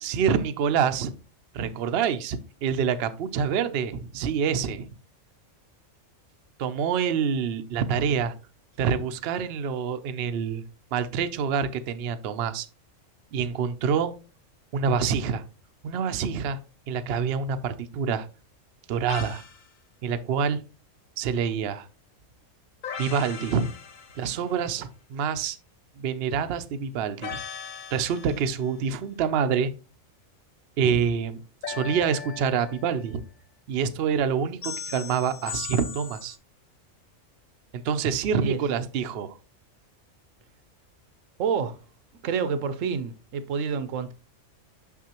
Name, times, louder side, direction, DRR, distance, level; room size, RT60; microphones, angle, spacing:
voice 1, 0.0-1.1 1.5-4.9 6.6-8.3 8.8-10.6 10.9-12.7 13.3-14.1 14.7-15.4 15.8-16.6 16.9-18.3 18.9-19.4 20.0-20.6 21.2-21.9 23.0-23.7 24.2-25.6 26.0-27.4 27.9-29.7 30.8-33.2 33.7-36.4 37.8-39.4, right 6 dB, 60° right, 0.7 m, -26 dB
sound 1, 19.1-19.6 22.8-24.5 27.2-28.6 31.6-33.1 34.6-36.4, left 6 dB, 50° left, 0.6 m, -38 dB
voice 2, 41.4-41.8 42.2-44.1, right 6 dB, 80° right, 1.0 m, -28 dB
6.3 x 5.9 x 2.9 m
omnidirectional pair, 1.3 m